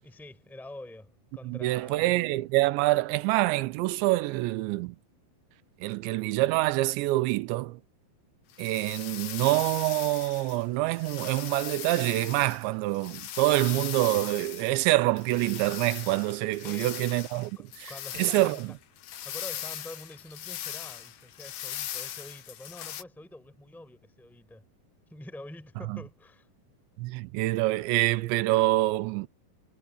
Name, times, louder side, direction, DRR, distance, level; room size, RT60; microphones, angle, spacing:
voice 1, 0.0-2.1 16.6-17.0 17.6-18.8 19.2-24.6 25.1-26.5, left 1 dB, ahead, 6.0 m, -46 dB
voice 2, 1.5-5.0 5.8-7.8 8.6-17.5 17.8-17.9 18.2-18.7 25.9-26.0 27.0-29.3, right 19 dB, 80° right, 2.7 m, -26 dB
sound 1, 8.5-10.6 10.9-14.8 15.2-23.0, left 11 dB, 60° left, 2.7 m, -39 dB
omnidirectional pair, 5.8 m